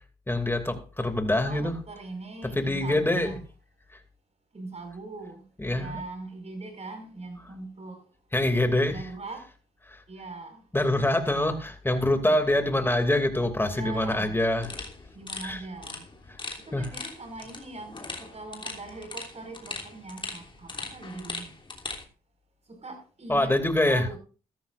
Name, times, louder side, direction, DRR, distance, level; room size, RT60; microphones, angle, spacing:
voice 1, 0.3-1.7 2.6-3.4 5.6-6.0 8.3-9.0 9.9-10.0 10.7-14.7 15.4-15.6 16.7-16.8 23.3-24.0, left 1 dB, 15° left, 2.6 m, -25 dB
voice 2, 1.5-3.4 4.5-5.4 5.8-8.0 8.9-9.4 10.1-10.6 12.4-12.9 13.6-14.4 15.1-16.0 16.7-21.5 22.7-23.5 23.9-24.2, right 3 dB, 45° right, 5.3 m, -41 dB
sound 1, 14.6-22.0, left 3 dB, 30° left, 3.1 m, -40 dB
15.5 x 13.0 x 2.6 m
supercardioid pair, 55°, 16 cm